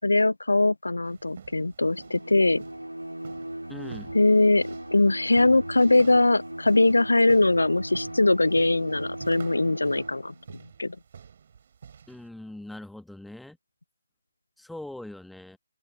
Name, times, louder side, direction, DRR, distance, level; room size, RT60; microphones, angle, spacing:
voice 1, 0.0-2.6 4.1-11.0, left 2 dB, 75° left, 0.6 m, -22 dB
sound 1, 1.0-12.3, right 7 dB, 40° right, 7.6 m, -49 dB
Bowed string instrument, 1.9-10.5, right 1 dB, 85° right, 3.0 m, -38 dB
voice 2, 3.7-4.1 12.1-13.6 14.6-15.6, left 1 dB, ahead, 1.4 m, -41 dB
open air
figure-of-eight pair, 145°, 0 cm